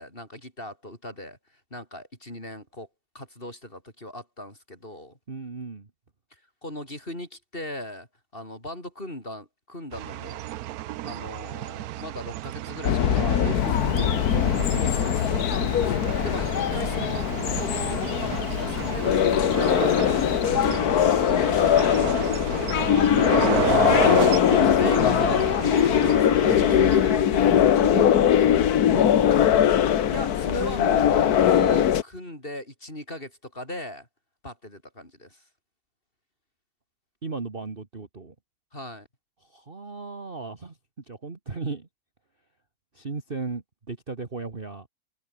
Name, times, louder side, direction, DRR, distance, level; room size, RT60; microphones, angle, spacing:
voice 1, 0.0-2.9 3.1-5.2 6.3-8.1 8.3-10.5 11.0-14.3 14.7-15.6 16.2-21.0 21.2-23.0 24.4-25.6 30.1-34.1 34.4-35.5 38.7-39.1, left 1 dB, 25° left, 8.1 m, -38 dB
voice 2, 5.3-5.9 13.2-14.5 23.1-23.7 24.5-25.5 26.2-29.4 37.2-38.3 39.5-40.7 41.1-41.9 43.0-44.9, right 4 dB, 30° right, 2.0 m, -35 dB
sound 1, 9.9-27.2, right 14 dB, 75° right, 0.9 m, -32 dB
sound 2, 12.8-32.0, left 10 dB, 55° left, 1.4 m, -21 dB
Bird, 13.5-20.4, left 14 dB, 85° left, 1.6 m, -38 dB
omnidirectional pair, 2.1 m